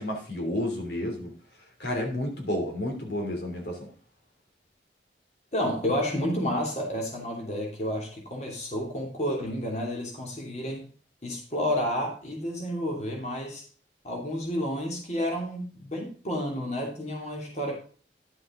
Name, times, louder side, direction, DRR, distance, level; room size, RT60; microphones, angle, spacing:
voice 1, 0.0-1.3 1.8-3.8, left 1 dB, 70° left, 2 dB, 2.9 m, -31 dB
voice 2, 5.5-10.8 11.2-13.6 14.0-17.7, equal, 40° left, 0 dB, 2.7 m, -30 dB
11.0 x 7.7 x 3.7 m, 0.40 s
head